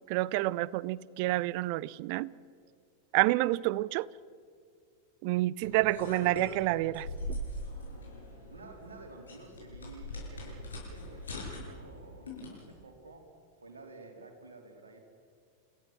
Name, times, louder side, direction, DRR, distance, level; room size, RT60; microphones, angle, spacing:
voice 1, 0.0-2.3 3.1-4.1 5.2-7.4, right 18 dB, 45° right, 0.5 m, -29 dB
sound 1, 5.6-12.7, left 1 dB, 70° left, 7.5 m, -42 dB
voice 2, 8.5-15.0, right 3 dB, 75° right, 3.8 m, -52 dB
29.5 x 16.0 x 6.0 m
figure-of-eight pair, 90°, 0 cm